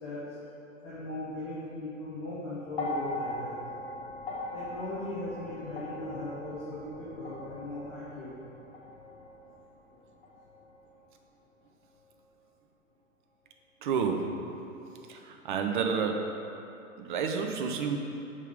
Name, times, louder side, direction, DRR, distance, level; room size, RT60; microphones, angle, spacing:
voice 1, 0.8-3.6 4.5-8.4, left 1 dB, 10° left, -10 dB, 0.3 m, -38 dB
sound 1, 2.7-11.1 12.1-12.2, left 2 dB, 45° left, 0.9 m, -40 dB
voice 2, 13.8-14.4 15.1-16.4 17.0-18.0, right 6 dB, 40° right, 4 dB, 0.6 m, -30 dB
6.4 x 5.0 x 3.7 m, 2.8 s
figure-of-eight pair, 105°, 41 cm